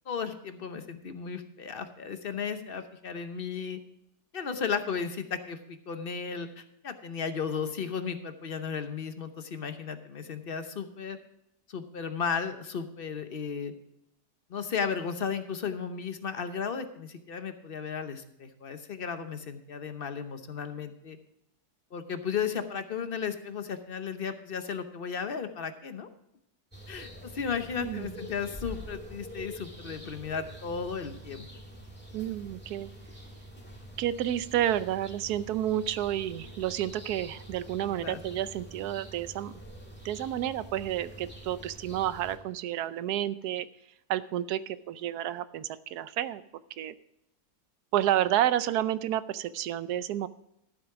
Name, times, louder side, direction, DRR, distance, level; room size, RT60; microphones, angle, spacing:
voice 1, 0.1-3.8 4.3-11.2 11.7-13.7 14.5-21.2 21.9-26.1 26.9-31.5 37.8-38.2, left 6 dB, 45° left, 9 dB, 0.8 m, -35 dB
sound 1, 26.7-42.4, right 1 dB, 5° left, 1.8 m, -46 dB
voice 2, 27.8-28.1 32.1-32.9 34.0-39.5 40.0-43.7 44.1-46.4 46.8-46.9 47.9-50.3, right 12 dB, 80° right, 15 dB, 1.1 m, -30 dB
13.0 x 7.6 x 4.8 m, 0.79 s
omnidirectional pair, 1.7 m